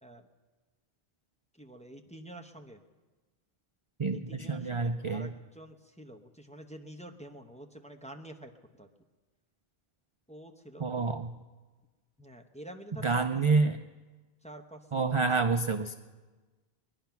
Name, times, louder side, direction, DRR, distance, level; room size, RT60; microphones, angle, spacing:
voice 1, 1.6-2.8 4.1-8.5 8.8-8.9 10.3-11.2 12.2-13.3 14.4-15.3, right 1 dB, 5° left, 3 dB, 0.8 m, -48 dB
voice 2, 4.0-5.3 10.8-11.3 13.0-13.8 14.9-15.9, right 4 dB, 40° right, 7 dB, 0.5 m, -28 dB
21.0 x 10.5 x 5.8 m, 1.3 s
omnidirectional pair, 1.1 m